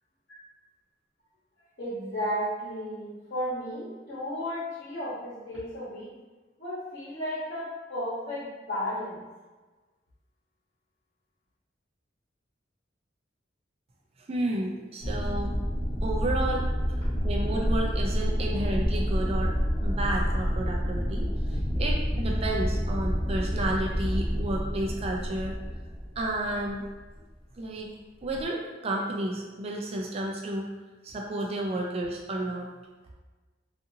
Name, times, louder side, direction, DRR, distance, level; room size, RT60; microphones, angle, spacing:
voice 1, 1.8-6.1 6.6-9.2, equal, 60° left, -12 dB, 1.0 m, -33 dB
voice 2, 14.3-15.5 16.0-16.7 17.2-19.5 19.8-25.5 26.2-26.8 27.6-27.9 28.2-30.7 31.0-32.7, right 1 dB, 35° right, -1 dB, 0.4 m, -31 dB
sound 1, 15.0-27.1 28.2-28.4, equal, 25° left, 0.6 m, -28 dB
2.6 x 2.5 x 2.7 m, 1.2 s
head